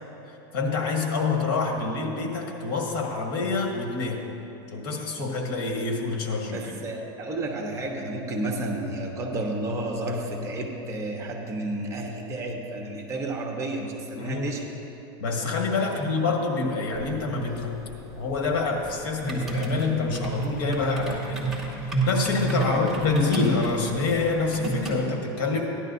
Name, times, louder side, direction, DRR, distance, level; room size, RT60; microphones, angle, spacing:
voice 1, 0.5-4.2 4.7-6.7 14.1-14.5 15.2-17.8 18.1-21.4 22.1-25.8, left 4 dB, 65° left, 1 dB, 1.6 m, -26 dB
voice 2, 6.5-14.7 15.8-16.2 22.6-22.9, right 1 dB, 25° right, 1 dB, 1.0 m, -32 dB
sound 1, 16.9-25.0, right 3 dB, ahead, 1.7 m, -31 dB
15.5 x 11.0 x 2.7 m, 3.0 s
supercardioid pair, 155°, 13 cm